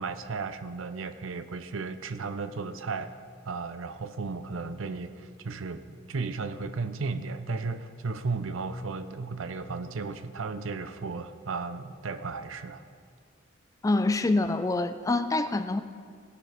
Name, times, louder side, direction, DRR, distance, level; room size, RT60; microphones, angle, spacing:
voice 1, 0.0-3.1 3.5-12.8, right 4 dB, 75° right, 11 dB, 0.6 m, -34 dB
voice 2, 13.8-15.8, left 2 dB, 15° left, 10 dB, 0.3 m, -26 dB
17.5 x 9.6 x 3.4 m, 2.1 s
head